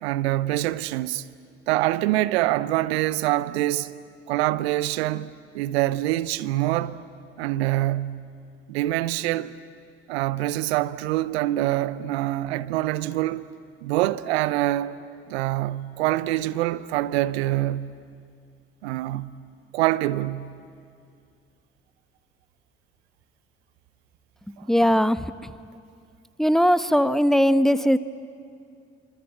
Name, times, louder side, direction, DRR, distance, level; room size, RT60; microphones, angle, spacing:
voice 1, 0.0-1.2 1.7-3.9 4.3-7.0 7.4-8.2 8.7-9.5 10.1-13.4 13.8-15.0 15.3-17.9 18.8-19.3 19.7-20.5 24.6-24.7, right 15 dB, 80° right, 0.7 m, -25 dB
voice 2, 24.7-25.3 26.4-28.0, equal, ahead, 1.0 m, -19 dB
26.5 x 25.0 x 9.0 m
figure-of-eight pair, 45°, 32 cm